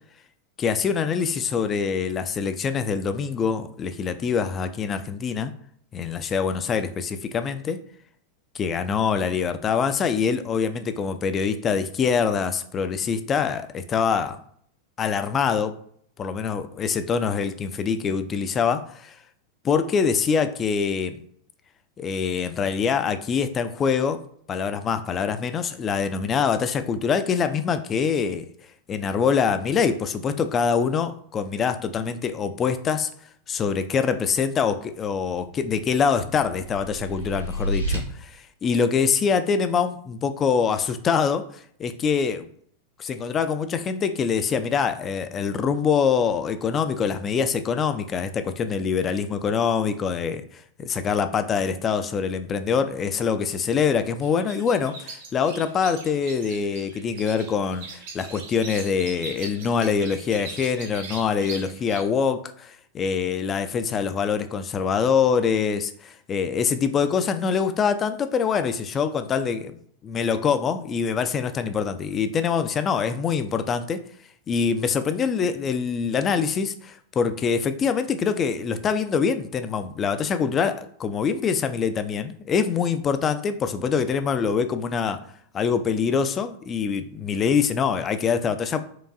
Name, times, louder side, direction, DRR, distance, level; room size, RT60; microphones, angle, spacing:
voice 1, 0.6-5.5 5.9-7.8 8.6-14.4 15.0-15.8 16.2-19.2 19.6-21.2 22.0-24.2 24.5-28.5 28.9-33.1 33.5-42.5 43.0-50.4 50.8-69.8 70.0-74.0 74.5-85.2 85.5-88.8, left 6 dB, 25° left, 10 dB, 0.3 m, -24 dB
sound 1, 35.2-38.0, right 1 dB, 90° right, 0.9 m, -31 dB
sound 2, 54.2-62.0, right 3 dB, 55° right, 0.8 m, -40 dB
4.6 x 2.3 x 2.5 m, 0.64 s
figure-of-eight pair, 90°, 0 cm